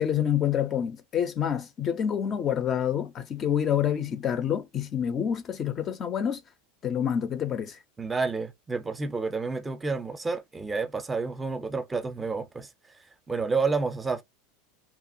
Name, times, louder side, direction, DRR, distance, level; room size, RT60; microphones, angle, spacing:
voice 1, 0.0-6.4 6.8-7.8, left 9 dB, 35° left, 0.4 m, -27 dB
voice 2, 8.0-12.7 13.3-14.2, right 4 dB, 15° right, 0.5 m, -29 dB
2.8 x 2.3 x 2.6 m
hypercardioid pair, 105°, 0 cm